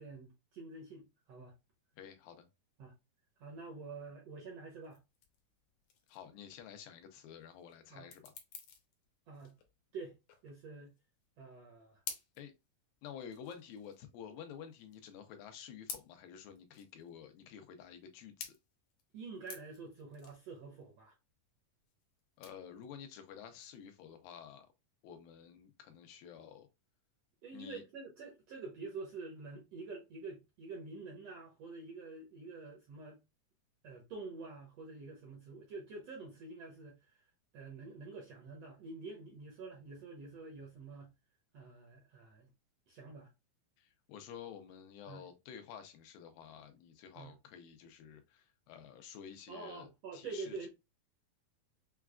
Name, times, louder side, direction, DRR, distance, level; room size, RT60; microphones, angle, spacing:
voice 1, 0.0-1.5 2.8-2.9 3.4-5.0 7.9-8.1 9.3-9.6 9.9-10.2 10.4-11.0 11.4-12.0 19.1-21.1 27.4-33.2 33.8-37.3 37.5-41.1 41.5-42.5 42.9-43.3 45.1-45.3 47.1-47.3 49.5-50.7, right 3 dB, 75° right, 1.5 m, -47 dB
voice 2, 2.0-2.5 6.1-8.3 12.4-12.5 13.0-18.5 22.4-24.7 25.0-26.7 27.5-27.8 43.8-50.7, left 8 dB, 85° left, 2.5 m, -51 dB
sound 1, 4.8-24.6, left 7 dB, 70° left, 1.8 m, -52 dB
6.5 x 2.4 x 2.3 m
omnidirectional pair, 3.9 m